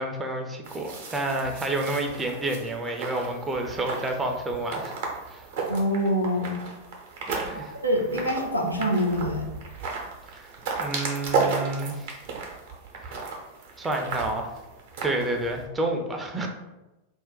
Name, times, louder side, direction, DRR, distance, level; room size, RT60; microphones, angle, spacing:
voice 1, 0.0-4.9 5.3-5.4 7.3-7.8 10.3-10.5 10.8-12.2 13.0-13.2 13.8-14.5 15.0-16.5, right 2 dB, 15° right, 2 dB, 0.4 m, -29 dB
sound 1, 0.6-15.6, right 4 dB, 55° right, 0.6 m, -34 dB
voice 2, 5.7-6.6 7.5-9.5, equal, 90° left, -1 dB, 0.5 m, -25 dB
2.4 x 2.1 x 3.8 m, 1.0 s
figure-of-eight pair, 90°, 0 cm